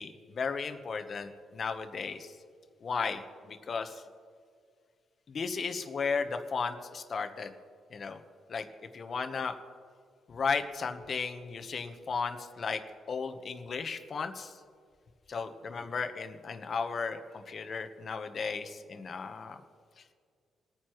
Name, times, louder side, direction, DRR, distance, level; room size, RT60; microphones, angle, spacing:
voice 1, 0.0-2.3 2.8-4.0 5.3-7.5 7.9-8.2 8.5-8.7 8.9-9.5 10.3-12.8 13.1-14.5 15.3-19.6, left 5 dB, 40° left, 7 dB, 1.0 m, -35 dB
23.0 x 9.5 x 3.0 m, 2.1 s
cardioid pair, 160°, 0 cm